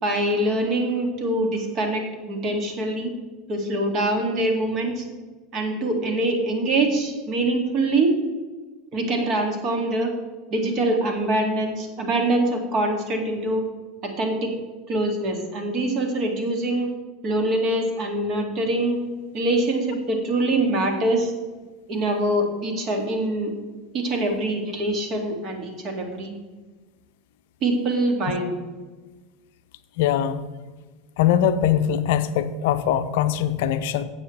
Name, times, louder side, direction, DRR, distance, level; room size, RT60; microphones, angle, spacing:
voice 1, 0.0-3.1 3.5-5.0 5.5-8.1 8.9-10.1 10.5-13.6 14.0-14.5 14.9-16.9 17.2-19.0 19.3-21.3 21.9-23.5 23.9-26.3 27.6-28.6, right 1 dB, 40° right, 3 dB, 2.2 m, -24 dB
voice 2, 30.0-30.4 31.2-34.0, left 10 dB, 60° left, 12 dB, 0.5 m, -22 dB
16.5 x 6.7 x 3.2 m, 1.3 s
figure-of-eight pair, 80°, 0 cm